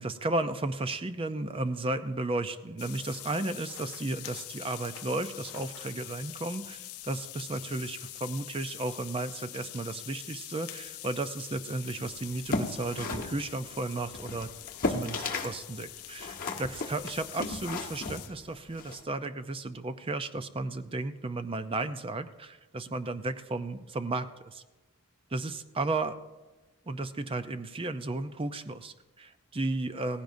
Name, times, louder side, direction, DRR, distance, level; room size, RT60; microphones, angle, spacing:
voice 1, 0.0-14.5 14.9-24.6 25.3-26.2 26.9-30.2, right 2 dB, 25° right, 11 dB, 0.5 m, -34 dB
sound 1, 2.8-18.3, left 15 dB, 75° left, 0.6 m, -44 dB
sound 2, 12.3-15.6 15.8-19.0, left 3 dB, 40° left, 1.3 m, -35 dB
17.5 x 15.5 x 2.6 m, 1.2 s
head